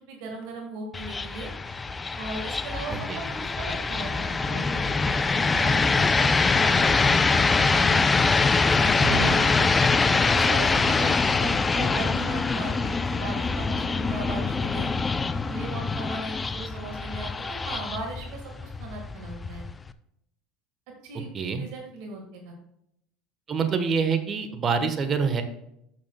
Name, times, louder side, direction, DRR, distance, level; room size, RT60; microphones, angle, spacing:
voice 1, 0.0-1.5 2.2-7.4 7.7-8.1 8.7-14.9 15.5-19.6 21.0-21.3 21.6-22.5, right 3 dB, 70° right, 2 dB, 1.6 m, -37 dB
sound 1, 0.9-19.9, left 4 dB, 20° left, 0.5 m, -24 dB
voice 2, 9.0-9.3 21.3-21.6 23.5-25.4, right 5 dB, 35° right, 8 dB, 1.1 m, -26 dB
12.0 x 6.5 x 2.2 m, 0.77 s
hypercardioid pair, 75°, 0 cm